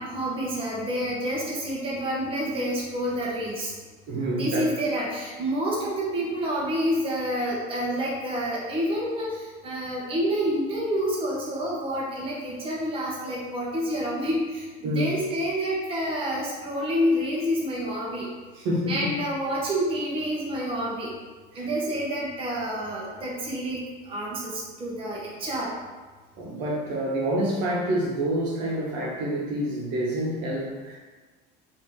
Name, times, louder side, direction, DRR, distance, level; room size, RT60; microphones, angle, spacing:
voice 1, 0.0-3.7 4.3-18.3 18.9-21.1 21.5-25.7, equal, 25° right, -5 dB, 1.1 m, -28 dB
voice 2, 4.1-4.7 14.8-15.1 18.6-19.1 21.6-21.9 26.4-31.0, right 1 dB, 70° right, -4 dB, 1.2 m, -27 dB
4.8 x 2.8 x 3.6 m, 1.3 s
cardioid pair, 130°, 20 cm